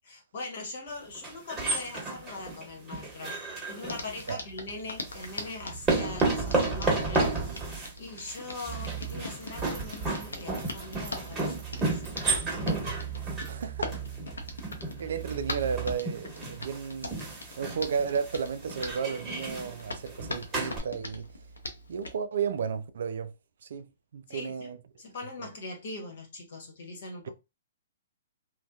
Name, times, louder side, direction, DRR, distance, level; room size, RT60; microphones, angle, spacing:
voice 1, 0.1-12.0 12.4-12.9 14.3-14.4 24.3-27.3, left 2 dB, 60° left, 1.0 m, -42 dB
sound 1, 1.2-4.3 5.1-20.8, right 3 dB, 15° right, 1.1 m, -32 dB
Hands, 3.9-22.2, left 2 dB, 90° left, 0.6 m, -42 dB
sound 2, 8.7-16.0, right 12 dB, 5° left, 0.9 m, -41 dB
voice 2, 13.5-13.9 15.0-17.2 17.6-21.3 21.9-23.3 23.6-24.8 27.2-27.3, right 6 dB, 70° right, 0.3 m, -33 dB
2.6 x 2.2 x 2.2 m
hypercardioid pair, 130°, 0 cm